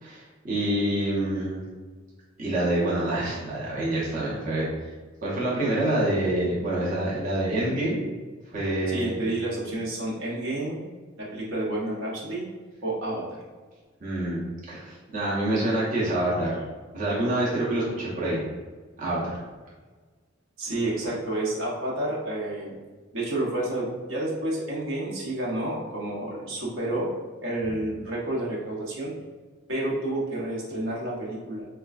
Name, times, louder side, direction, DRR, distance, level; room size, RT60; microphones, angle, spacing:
voice 1, 0.0-1.6 2.4-4.9 5.2-8.0 8.5-9.2 14.0-16.6 16.9-18.4 19.0-19.4, right 1 dB, 40° right, -7 dB, 0.7 m, -27 dB
voice 2, 8.9-10.8 11.2-12.4 12.8-13.4 20.6-22.7 23.1-27.1 27.4-29.1 29.7-31.7, right 1 dB, 70° right, -5 dB, 0.8 m, -30 dB
4.2 x 2.2 x 2.4 m, 1.4 s
head